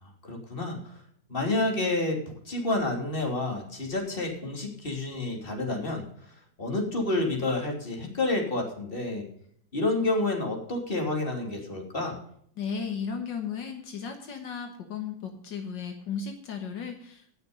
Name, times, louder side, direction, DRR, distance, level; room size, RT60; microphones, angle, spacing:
voice 1, 0.0-0.8 1.3-2.2 2.5-6.0 6.6-9.3 9.7-12.2, left 2 dB, 30° left, 1 dB, 3.2 m, -29 dB
voice 2, 12.6-17.3, left 6 dB, 70° left, 4 dB, 2.1 m, -35 dB
18.0 x 6.7 x 5.2 m, 0.66 s
omnidirectional pair, 2.0 m